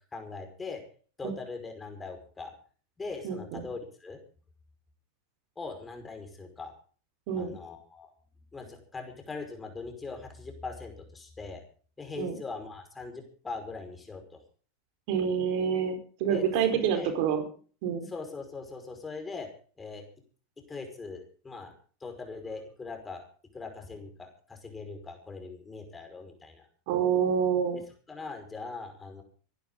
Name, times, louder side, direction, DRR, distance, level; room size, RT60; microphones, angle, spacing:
voice 1, 0.1-0.8 1.2-2.5 3.0-4.2 5.6-6.7 7.4-8.1 8.5-11.6 12.0-14.4 16.3-17.1 18.1-19.5 19.8-20.1 20.7-21.7 22.0-23.3 23.5-26.6 27.8-29.2, left 4 dB, 15° left, 5 dB, 5.4 m, -41 dB
voice 2, 3.2-3.7 7.3-7.5 12.2-12.4 15.1-17.5 17.8-18.1 26.9-27.8, right 7 dB, 60° right, 6 dB, 4.4 m, -27 dB
27.0 x 11.5 x 3.9 m, 0.41 s
hypercardioid pair, 100°, 0 cm